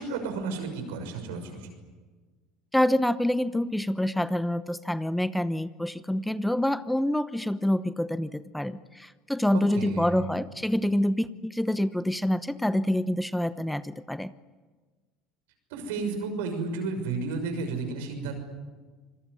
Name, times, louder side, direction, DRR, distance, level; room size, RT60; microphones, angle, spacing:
voice 1, 0.0-1.7 9.5-10.2 15.7-18.3, right 4 dB, 75° right, 6 dB, 6.3 m, -32 dB
voice 2, 2.7-14.3, left 1 dB, 5° left, 14 dB, 0.9 m, -27 dB
26.5 x 22.0 x 9.9 m, 1.4 s
hypercardioid pair, 75°, 0 cm